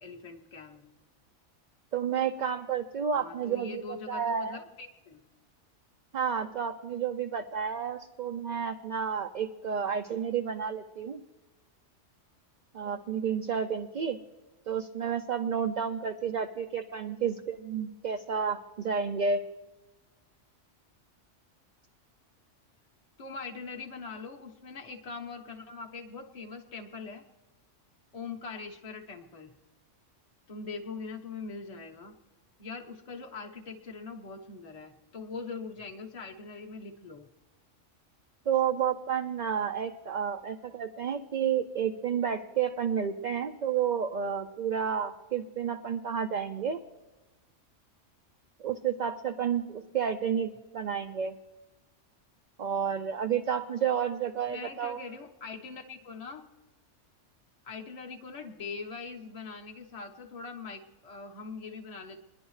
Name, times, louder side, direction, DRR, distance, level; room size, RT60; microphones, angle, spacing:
voice 1, 0.0-0.8 3.2-5.2 23.2-27.2 28.1-29.5 30.5-32.1 32.6-37.3 54.5-56.5 57.6-62.2, left 4 dB, 35° left, 2 dB, 1.0 m, -42 dB
voice 2, 1.9-4.6 6.1-11.2 12.7-14.2 14.7-19.4 38.5-46.8 48.6-51.4 52.6-55.0, right 7 dB, 55° right, 4 dB, 0.5 m, -31 dB
29.5 x 10.5 x 3.2 m, 1.1 s
omnidirectional pair, 1.3 m